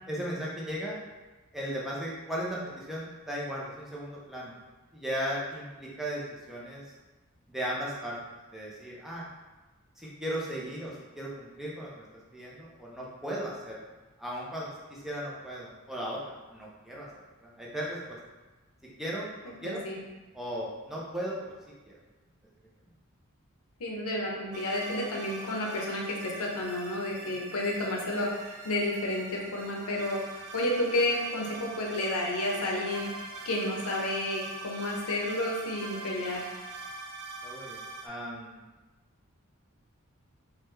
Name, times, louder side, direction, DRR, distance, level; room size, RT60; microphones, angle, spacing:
voice 1, 0.1-1.0 1.5-4.5 4.9-6.8 7.5-8.2 8.5-9.2 10.0-12.0 12.3-13.9 14.2-17.1 17.4-18.2 19.0-19.3 19.6-19.8 20.3-21.4 21.9-22.0 37.4-38.6, equal, ahead, -5 dB, 0.5 m, -36 dB
voice 2, 19.5-20.0 23.8-33.1 33.4-36.5, left 1 dB, 75° left, -1 dB, 0.6 m, -31 dB
sound 1, 24.5-38.1, right 3 dB, 75° right, 0.4 m, -43 dB
3.2 x 2.2 x 3.2 m, 1.2 s
head